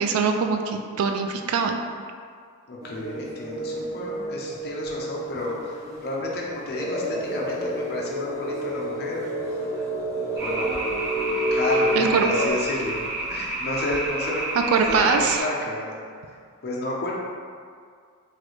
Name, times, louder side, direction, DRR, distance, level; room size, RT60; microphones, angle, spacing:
voice 1, 0.0-1.8 12.0-12.3 14.7-15.4, right 5 dB, 75° right, 5 dB, 0.3 m, -22 dB
voice 2, 2.7-9.2 10.3-11.1 11.5-14.6 14.9-15.9 16.6-17.1, left 1 dB, 50° left, -3 dB, 0.6 m, -31 dB
sound 1, 2.8-6.3 6.7-12.5, right 1 dB, 15° right, 0.5 m, -29 dB
sound 2, 10.4-15.4, right 2 dB, 55° right, 0.8 m, -30 dB
3.1 x 2.4 x 3.0 m, 2.1 s
head